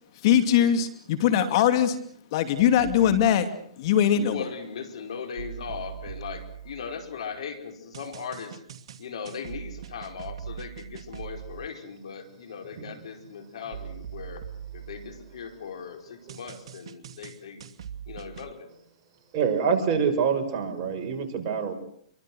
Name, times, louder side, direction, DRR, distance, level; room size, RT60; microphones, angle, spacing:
voice 1, 0.2-2.0 2.3-3.5 3.8-4.4, left 9 dB, 50° left, 10 dB, 2.7 m, -21 dB
sound 1, 2.8-3.3 5.4-7.2 7.9-11.7 13.7-15.6 16.3-18.5, right 9 dB, 60° right, 2.6 m, -41 dB
voice 2, 4.1-8.6 9.0-14.4 14.7-17.7 18.1-18.7, left 6 dB, 70° left, 7 dB, 5.0 m, -38 dB
voice 3, 19.3-21.7, right 6 dB, 40° right, 3 dB, 6.0 m, -25 dB
28.0 x 24.0 x 6.4 m, 0.64 s
hypercardioid pair, 130°, 3 cm